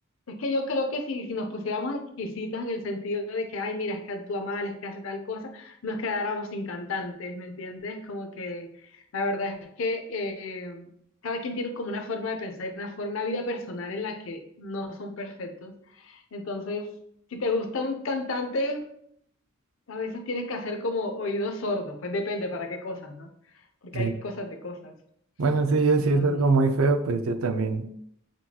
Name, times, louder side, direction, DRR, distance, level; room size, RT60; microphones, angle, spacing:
voice 1, 0.3-8.7 9.1-10.9 11.2-16.9 17.3-18.8 19.9-23.3 23.8-24.9 25.9-26.4, left 2 dB, 65° left, 5 dB, 0.6 m, -32 dB
voice 2, 25.4-27.9, right 3 dB, 80° right, 8 dB, 0.5 m, -23 dB
6.0 x 2.3 x 2.8 m, 0.70 s
head